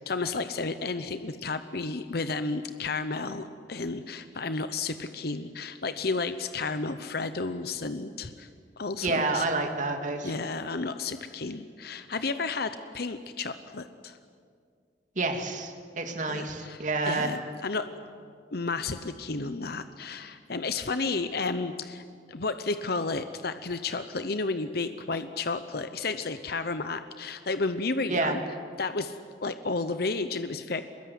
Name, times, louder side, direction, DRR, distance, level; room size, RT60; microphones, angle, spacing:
voice 1, 0.1-8.5 8.8-9.4 10.2-14.2 16.3-17.9 18.5-22.0 22.3-28.4 28.8-29.2 29.4-30.8, left 3 dB, 60° left, 10 dB, 0.9 m, -32 dB
voice 2, 9.0-10.3 15.2-17.3 28.1-28.4, right 3 dB, 45° right, 4 dB, 2.6 m, -29 dB
24.0 x 22.0 x 9.7 m, 2.2 s
head